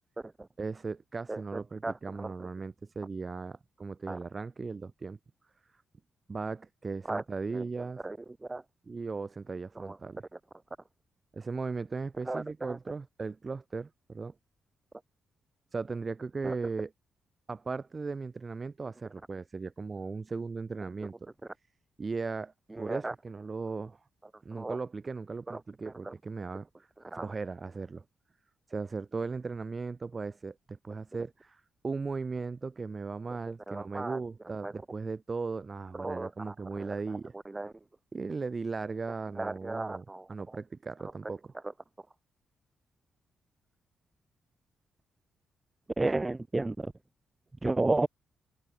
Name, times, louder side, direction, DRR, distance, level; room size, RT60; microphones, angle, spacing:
voice 1, 0.6-5.2 6.3-8.0 8.8-10.2 11.3-14.3 15.7-16.9 17.5-21.3 22.0-24.0 24.4-26.9 27.1-28.0 28.7-37.3 38.1-41.5, right 4 dB, 40° right, 3.6 m, -37 dB
voice 2, 12.3-12.8 16.4-16.5 22.8-23.1 24.6-24.8 25.5-25.6 26.1-26.2 27.1-27.2 33.7-34.2 34.6-34.7 36.0-36.5 36.8-36.9 37.5-37.7 39.4-40.2 46.0-46.9 47.6-48.1, right 2 dB, 25° right, 1.0 m, -32 dB
open air
supercardioid pair, 50°, 0 cm